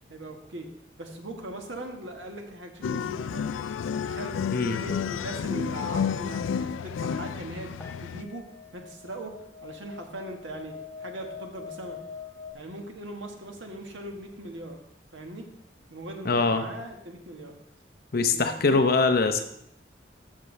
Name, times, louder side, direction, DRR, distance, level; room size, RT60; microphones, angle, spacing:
voice 1, 0.1-0.7 1.0-3.5 4.0-12.0 12.5-14.8 15.1-15.5 15.9-17.5 18.3-18.8, right 1 dB, 85° right, 3 dB, 1.5 m, -40 dB
sound 1, 2.8-8.2, left 7 dB, 90° left, 0.3 m, -31 dB
sound 2, 7.8-12.5, left 6 dB, 10° left, 1.0 m, -43 dB
voice 2, 16.2-16.7 18.1-19.4, left 3 dB, 55° left, 7 dB, 0.8 m, -23 dB
13.5 x 6.7 x 3.3 m, 0.75 s
head